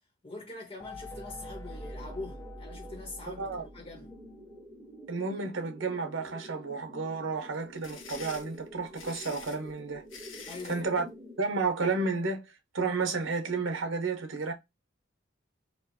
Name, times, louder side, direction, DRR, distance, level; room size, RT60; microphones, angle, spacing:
voice 1, 0.2-4.1 10.5-10.8, left 2 dB, 30° left, 1.2 m, -43 dB
sound 1, 0.8-4.5, left 1 dB, 15° left, 0.5 m, -45 dB
sound 2, 1.7-11.6, equal, 5° right, 1.3 m, -49 dB
voice 2, 5.1-10.0 10.6-11.0 11.4-12.4 12.7-14.5, right 4 dB, 80° right, 1.0 m, -31 dB
sound 3, 7.5-10.8, left 6 dB, 85° left, 1.1 m, -46 dB
4.6 x 2.4 x 2.7 m
head